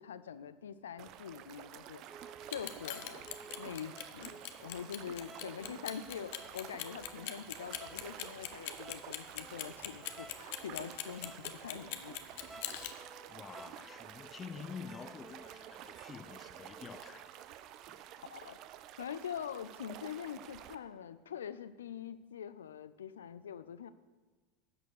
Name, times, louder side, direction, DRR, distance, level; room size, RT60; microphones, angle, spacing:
voice 1, 0.0-2.0 2.5-3.2 3.6-12.2 12.4-12.6 18.2-18.6 19.0-23.9, left 8 dB, 85° left, 0.5 m, -44 dB
sound 1, 1.0-20.8, right 12 dB, 50° right, 0.5 m, -50 dB
sound 2, 2.1-17.5, right 2 dB, 10° right, 0.8 m, -56 dB
Clock, 2.4-12.9, left 15 dB, 65° left, 0.8 m, -41 dB
voice 2, 13.3-17.5 17.9-18.0, left 6 dB, 25° left, 0.6 m, -48 dB
11.0 x 6.5 x 6.6 m
hypercardioid pair, 90°, 0 cm